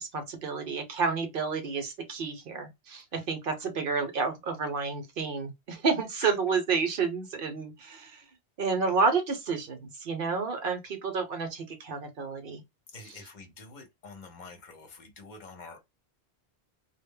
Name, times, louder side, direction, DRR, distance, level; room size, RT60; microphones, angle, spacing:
voice 1, 0.0-8.2 8.6-12.6, right 4 dB, 60° right, 0.8 m, -30 dB
voice 2, 12.9-15.8, left 3 dB, 50° left, 0.8 m, -46 dB
2.1 x 2.0 x 3.4 m
omnidirectional pair, 1.1 m